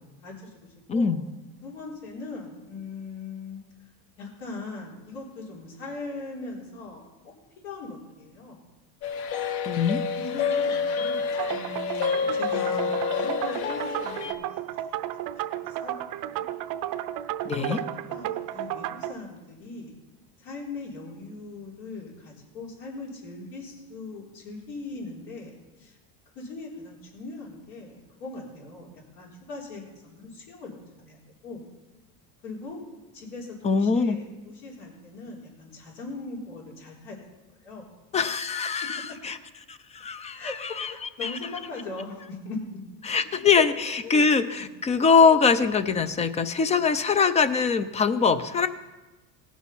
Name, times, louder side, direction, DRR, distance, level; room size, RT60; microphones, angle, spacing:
voice 1, 0.2-1.2 1.6-3.6 4.2-7.3 7.6-8.6 10.1-15.9 16.3-16.4 17.5-20.0 20.4-26.0 26.4-31.6 32.4-32.8 33.1-37.2 37.6-37.9 38.8-39.2 40.3-42.6 43.1-43.2 44.0-44.2 44.5-44.7, left 3 dB, 85° left, -3 dB, 4.0 m, -40 dB
voice 2, 0.9-1.2 9.7-10.0 17.4-17.8 33.6-34.2 38.1-39.4 39.7-40.9 41.2-41.4 43.0-48.7, left 5 dB, 15° left, 13 dB, 0.3 m, -23 dB
sound 1, 9.0-14.3, left 6 dB, 55° left, 1.0 m, -28 dB
sound 2, 11.4-19.1, right 12 dB, 50° right, 0.6 m, -33 dB
18.5 x 6.2 x 5.5 m, 1.1 s
supercardioid pair, 125°, 45 cm